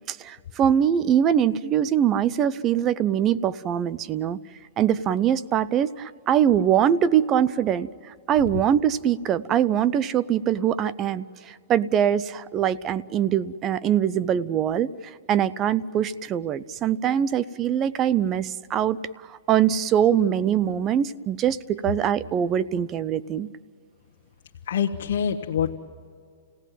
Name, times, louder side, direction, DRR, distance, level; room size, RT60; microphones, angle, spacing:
voice 1, 0.0-4.4 4.8-7.9 8.3-14.9 15.3-19.0 19.5-23.5, right 9 dB, 25° right, 18 dB, 0.5 m, -23 dB
voice 2, 24.6-25.8, left 8 dB, 70° left, 1 dB, 1.1 m, -25 dB
29.5 x 17.0 x 9.2 m, 2.2 s
hypercardioid pair, 150°, 0 cm